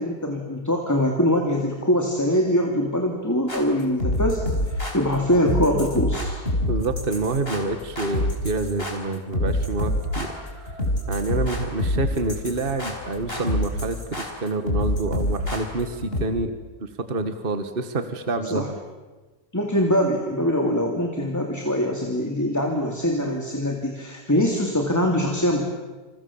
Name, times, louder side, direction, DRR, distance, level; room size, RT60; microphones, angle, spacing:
voice 1, 0.0-6.4 18.4-18.7 19.5-25.6, equal, 10° left, 2 dB, 2.7 m, -23 dB
sound 1, 3.5-16.2, left 1 dB, 35° left, 5.0 m, -27 dB
voice 2, 6.7-10.3 11.1-16.5 16.8-18.7, right 3 dB, 35° right, 9 dB, 1.9 m, -27 dB
29.5 x 27.5 x 7.3 m, 1.3 s
omnidirectional pair, 1.7 m